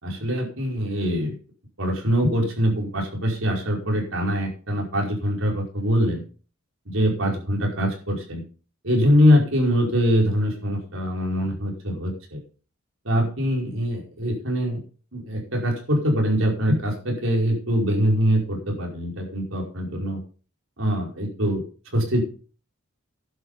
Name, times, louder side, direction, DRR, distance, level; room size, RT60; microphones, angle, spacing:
voice 1, 0.0-1.3 1.8-6.2 6.9-8.4 8.8-12.4 13.1-14.8 15.1-20.2 20.8-21.6 21.9-22.2, equal, 65° right, 0 dB, 5.2 m, -23 dB
11.0 x 8.7 x 5.7 m, 0.38 s
head